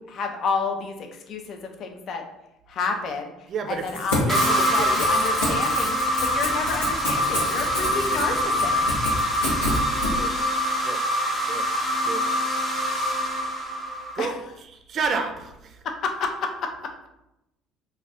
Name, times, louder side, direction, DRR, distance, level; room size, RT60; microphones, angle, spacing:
voice 1, 0.0-2.2 2.7-3.3 3.7-8.8 14.2-14.3 15.8-17.1, left 4 dB, 55° left, 4 dB, 0.4 m, -30 dB
voice 2, 3.5-5.1 5.5-5.6 6.1-6.4 10.1-10.3 10.8-11.0 11.5-11.7 12.0-12.2 14.1-15.8, right 5 dB, 50° right, 5 dB, 0.4 m, -31 dB
Crackle / Tearing, 3.7-10.1, left 1 dB, 90° left, 0.8 m, -30 dB
sound 1, 4.3-14.3, equal, 30° left, 0.8 m, -24 dB
2.4 x 2.2 x 3.4 m, 0.89 s
hypercardioid pair, 60°, 0 cm